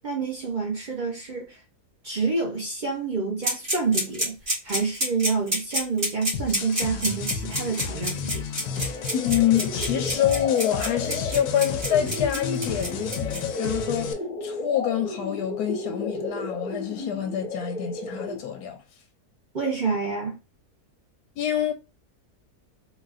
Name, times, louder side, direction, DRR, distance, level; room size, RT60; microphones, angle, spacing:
voice 1, 0.0-1.6 2.0-4.4 4.6-8.5 19.5-20.4, right 4 dB, 60° right, 0.4 m, -28 dB
sound 1, 3.4-13.4, equal, 40° right, 2.1 m, -27 dB
sound 2, 6.3-14.1, left 6 dB, 70° left, 0.8 m, -33 dB
sound 3, 8.6-18.6, left 3 dB, 40° left, 0.6 m, -33 dB
voice 2, 9.1-14.2 14.4-18.8 21.4-21.7, left 10 dB, 85° left, 1.2 m, -26 dB
4.0 x 2.4 x 2.4 m
omnidirectional pair, 1.7 m